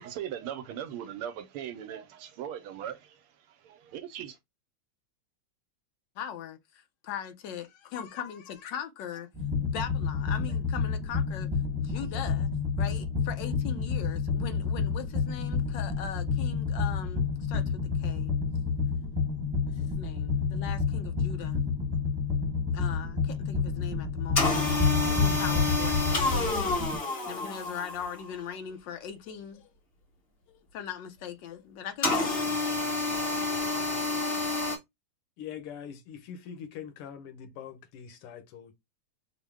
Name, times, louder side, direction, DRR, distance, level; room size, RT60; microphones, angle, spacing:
voice 1, 0.0-3.0 3.6-4.4, right 10 dB, 85° right, 1.5 m, -39 dB
voice 2, 6.2-9.3 9.6-11.5 11.8-12.5 12.8-18.3 19.7-21.6 22.7-24.6 25.0-29.7 30.5-32.6, left 8 dB, 70° left, 1.2 m, -40 dB
sound 1, 9.3-27.0, left 5 dB, 20° right, 0.7 m, -29 dB
sound 2, 24.4-28.3 32.0-34.8, left 2 dB, 35° left, 1.1 m, -29 dB
voice 3, 35.4-38.7, left 8 dB, 90° left, 1.8 m, -43 dB
5.1 x 2.1 x 3.3 m
omnidirectional pair, 2.4 m